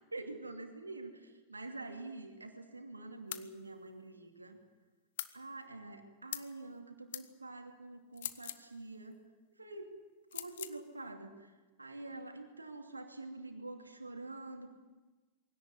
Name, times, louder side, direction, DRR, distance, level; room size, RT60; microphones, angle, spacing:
voice 1, 0.1-4.6 5.3-9.1 9.6-10.0 10.3-11.5 11.8-14.7, right 2 dB, 80° right, 5 dB, 2.5 m, -46 dB
sound 1, 3.3-3.5 5.2-5.4 6.3-6.5 7.1-7.3 8.1-8.7 10.3-10.8, left 12 dB, 60° left, 1.1 m, -42 dB
21.5 x 17.5 x 9.7 m, 1.3 s
figure-of-eight pair, 90°, 0 cm